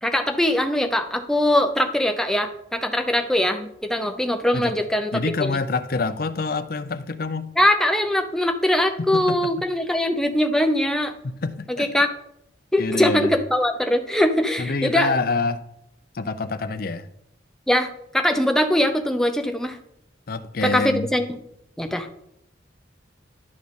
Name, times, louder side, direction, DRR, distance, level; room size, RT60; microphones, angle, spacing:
voice 1, 0.0-5.1 7.6-11.1 11.7-12.1 12.7-15.2 17.7-19.8 20.6-21.2 21.8-22.1, left 1 dB, 5° left, 0.6 m, -22 dB
voice 2, 5.1-7.5 9.0-9.7 11.2-11.9 12.8-13.3 14.6-15.6 16.1-17.1 20.3-21.1, left 3 dB, 50° left, 0.5 m, -26 dB
11.5 x 6.0 x 3.7 m
head